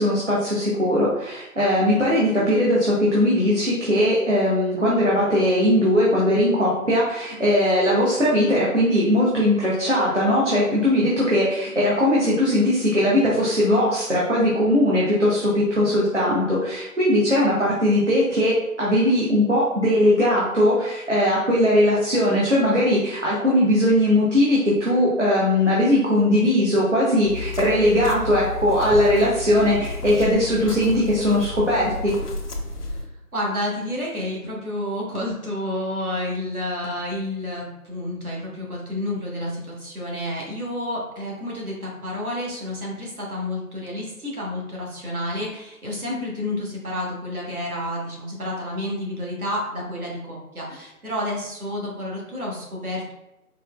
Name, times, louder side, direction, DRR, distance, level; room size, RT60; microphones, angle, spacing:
voice 1, 0.0-32.1, left 1 dB, 50° right, -6 dB, 0.8 m, -20 dB
sound 1, 27.2-33.1, left 2 dB, 80° left, 0.8 m, -32 dB
voice 2, 33.3-53.1, left 1 dB, 70° right, -3 dB, 1.4 m, -30 dB
4.3 x 2.8 x 2.3 m, 0.93 s
figure-of-eight pair, 180°, 46 cm